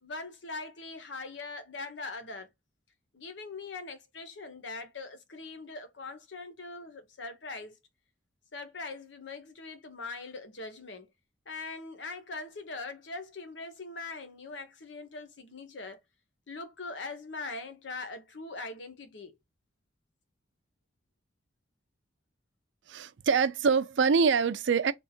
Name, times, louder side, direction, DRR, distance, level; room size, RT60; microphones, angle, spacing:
voice 1, 0.0-2.5 3.1-7.8 8.5-11.1 11.5-16.0 16.5-19.4, left 3 dB, 85° left, 0.9 m, -41 dB
voice 2, 22.9-24.9, right 5 dB, 85° right, 0.5 m, -25 dB
3.5 x 2.4 x 4.2 m
head